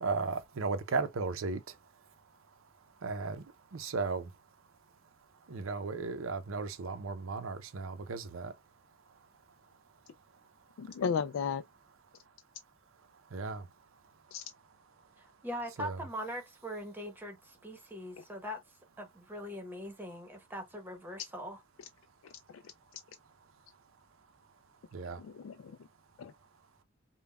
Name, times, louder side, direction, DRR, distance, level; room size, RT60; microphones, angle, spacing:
voice 1, 0.0-1.6 3.0-3.4 3.7-4.2 5.5-8.5 13.3-13.6 15.8-16.0 24.9-25.2, right 4 dB, 85° right, 0.6 m, -35 dB
voice 2, 10.8-11.6 14.3-14.4 18.2-18.3 22.2-22.6 25.2-25.7 26.2-26.3, left 6 dB, 80° left, 0.3 m, -35 dB
voice 3, 15.4-18.6 19.0-21.6, equal, 10° right, 1.0 m, -41 dB
5.2 x 2.2 x 2.3 m
head